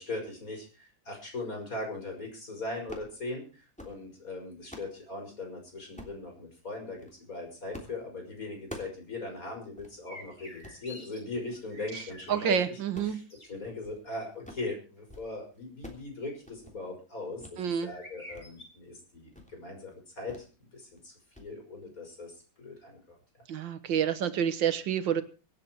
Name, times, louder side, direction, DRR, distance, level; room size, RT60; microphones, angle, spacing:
voice 1, 0.0-12.8 13.1-13.2 13.5-20.4 20.7-23.2, left 2 dB, 45° left, 1 dB, 6.4 m, -40 dB
sound 1, 2.9-3.1 3.6-4.0 4.4-5.0 6.0-6.2 6.8-7.2 7.7-8.0 8.3-9.0 9.4-9.5 9.8-9.9 10.5-10.8 11.3-11.6 12.0-12.4 12.8-14.0 14.3-14.7 15.0-15.3 15.5-16.1 16.4-16.8 17.4-17.6 18.0-18.5 18.8-18.9 19.3-19.6 20.3-20.5 20.8-21.0 21.3-21.5, left 1 dB, 5° left, 3.1 m, -47 dB
sound 2, 10.1-11.2 11.5-12.6 13.0-13.5 17.8-18.6, left 1 dB, 25° left, 6.2 m, -48 dB
voice 2, 12.3-13.2 17.6-17.9 23.5-25.2, right 8 dB, 85° right, 12 dB, 1.9 m, -28 dB
24.5 x 8.6 x 4.7 m, 0.36 s
omnidirectional pair, 2.0 m